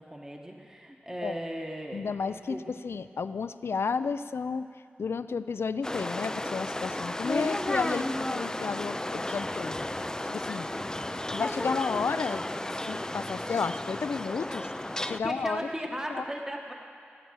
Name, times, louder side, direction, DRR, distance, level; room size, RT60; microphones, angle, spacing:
voice 1, 0.0-2.7 10.7-11.2 15.2-16.8, equal, 15° right, 1 dB, 1.2 m, -37 dB
voice 2, 1.9-2.6 2.8-4.7 5.0-10.7 11.3-12.4 12.9-14.7 15.0-15.6 16.1-16.2, left 5 dB, 85° left, 12 dB, 0.4 m, -32 dB
sound 1, 5.8-15.2, left 1 dB, 15° left, 0.4 m, -33 dB
18.5 x 8.8 x 6.3 m, 2.4 s
wide cardioid pair, 70°, 4 cm